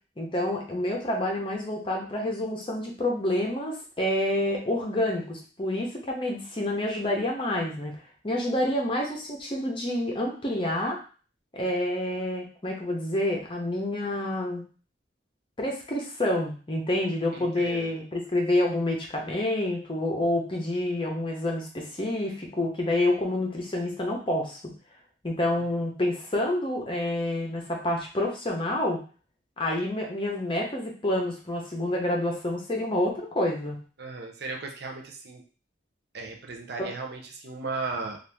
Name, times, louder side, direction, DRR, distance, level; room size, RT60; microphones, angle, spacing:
voice 1, 0.2-7.9 8.2-11.0 11.5-14.6 15.6-24.6 25.2-29.0 29.6-33.8 36.8-36.9, left 1 dB, 30° left, 0 dB, 0.7 m, -28 dB
voice 2, 17.3-18.0 25.5-25.9 34.0-35.4 36.1-38.2, right 3 dB, 60° right, 1 dB, 0.5 m, -36 dB
2.8 x 2.4 x 3.4 m, 0.38 s
head